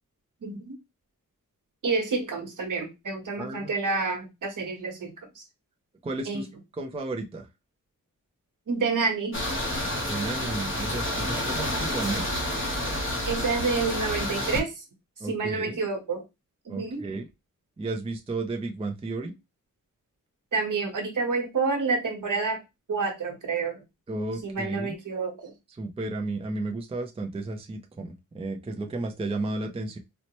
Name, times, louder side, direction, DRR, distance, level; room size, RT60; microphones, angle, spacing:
voice 1, 0.4-0.7 1.8-5.4 6.3-6.4 8.7-9.4 13.2-14.8 15.2-16.2 16.6-17.1 20.5-22.6 22.9-23.8 24.4-25.5, right 4 dB, 70° right, 1.1 m, -29 dB
voice 2, 3.4-3.7 6.0-6.5 6.8-7.5 10.0-12.2 15.2-15.8 16.7-17.3 17.8-19.3 24.1-24.9 25.8-30.0, right 2 dB, 20° right, 0.4 m, -33 dB
sound 1, 9.3-14.6, left 1 dB, 40° left, 0.9 m, -29 dB
4.3 x 2.1 x 2.9 m
wide cardioid pair, 145°, 32 cm